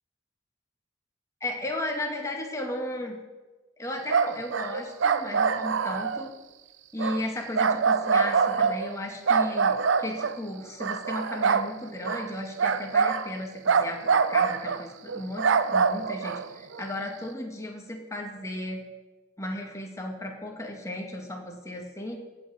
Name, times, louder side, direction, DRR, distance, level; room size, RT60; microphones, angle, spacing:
voice 1, 1.4-3.2 3.8-6.3 6.9-18.8 19.4-22.2, left 1 dB, 15° left, 1 dB, 2.2 m, -35 dB
sound 1, 4.0-6.2 7.0-7.2 7.5-8.9 9.3-10.3 10.8-11.7 12.0-12.3 12.6-13.3 13.6-14.8 15.1-16.8, right 5 dB, 75° right, 0.6 m, -25 dB
16.5 x 6.2 x 7.8 m, 1.2 s
head